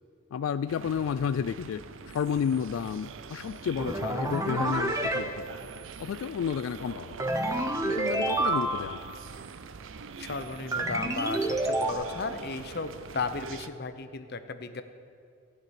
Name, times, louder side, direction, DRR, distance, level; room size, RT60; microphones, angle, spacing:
voice 1, 0.3-5.5 6.0-7.2 7.8-9.0, left 7 dB, 90° left, 13 dB, 0.3 m, -31 dB
sound 1, 0.7-13.7, right 5 dB, 75° right, 0.5 m, -44 dB
sound 2, 3.8-5.2 7.2-9.0 10.7-11.9, right 2 dB, 15° right, 0.8 m, -28 dB
voice 2, 10.2-14.8, left 3 dB, 55° left, 9 dB, 0.9 m, -35 dB
15.5 x 6.6 x 10.0 m, 2.3 s
head